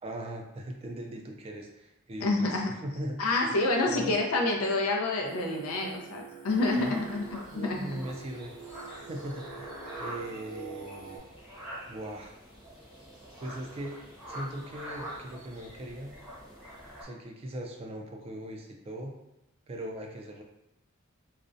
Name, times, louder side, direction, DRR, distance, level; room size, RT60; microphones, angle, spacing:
voice 1, 0.0-3.2 3.4-3.6 3.9-4.2 6.8-7.2 7.5-8.7 9.1-11.2 11.9-12.3 13.4-14.0 14.3-16.1 17.0-19.1 19.7-20.4, right 1 dB, 30° right, 1 dB, 0.3 m, -40 dB
voice 2, 2.2-2.7 3.2-7.3 7.5-7.9, left 2 dB, 90° left, 1 dB, 0.5 m, -28 dB
Singing, 5.2-11.2, right 6 dB, 90° right, 0.7 m, -46 dB
sound 1, 6.5-17.0, equal, 5° right, 0.6 m, -45 dB
2.4 x 2.0 x 2.5 m, 0.89 s
head